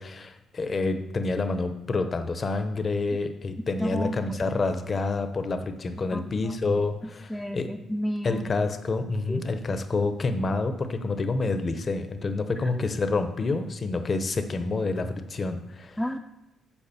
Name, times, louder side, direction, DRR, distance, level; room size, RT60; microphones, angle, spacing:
voice 1, 0.0-7.7 8.2-16.0, left 3 dB, 40° left, 8 dB, 0.8 m, -28 dB
voice 2, 3.8-4.4 6.1-6.8 7.0-8.5 9.3-9.4 16.0-16.2, equal, 5° left, 3 dB, 0.5 m, -32 dB
7.0 x 4.9 x 7.0 m, 0.95 s
cardioid pair, 90°, 0 cm